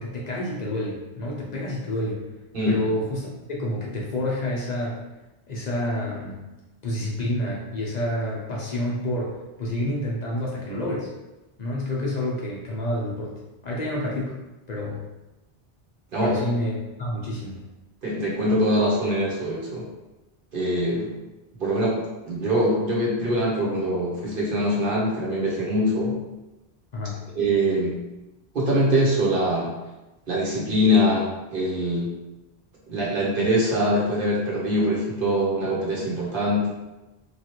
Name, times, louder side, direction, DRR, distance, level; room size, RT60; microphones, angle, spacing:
voice 1, 0.0-2.3 2.7-5.0 5.5-6.4 6.8-11.1 11.6-14.4 14.7-15.0 16.2-17.6 26.9-27.2, left 1 dB, 50° left, -4 dB, 0.6 m, -29 dB
voice 2, 16.1-16.4 18.0-19.8 20.5-21.1 21.6-22.0 22.2-26.2 27.3-28.0 28.5-29.7 30.3-32.1 32.9-36.7, equal, 60° right, -5 dB, 1.1 m, -23 dB
3.0 x 2.4 x 2.9 m, 1.0 s
omnidirectional pair, 1.1 m